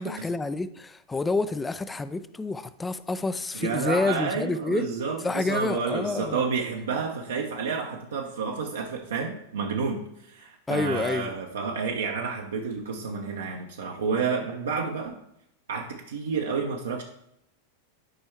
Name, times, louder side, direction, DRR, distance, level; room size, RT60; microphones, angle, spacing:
voice 1, 0.0-4.9 5.2-6.4 10.7-11.3, left 3 dB, 10° left, 0.4 m, -28 dB
voice 2, 3.5-15.1 15.7-17.0, right 5 dB, 65° right, 0.8 m, -30 dB
11.5 x 5.3 x 3.4 m
figure-of-eight pair, 90°, 0 cm